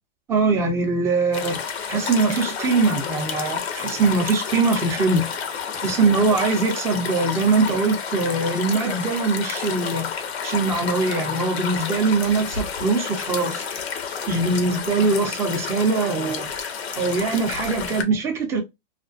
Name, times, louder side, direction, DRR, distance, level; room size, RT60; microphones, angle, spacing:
voice 1, 0.3-5.4 5.8-10.1 10.4-13.7 14.3-16.5 17.0-18.6, right 3 dB, 10° right, 0.3 m, -22 dB
sound 1, 1.3-18.0, left 6 dB, 85° left, 0.8 m, -30 dB
2.4 x 2.2 x 2.4 m
hypercardioid pair, 125°, 31 cm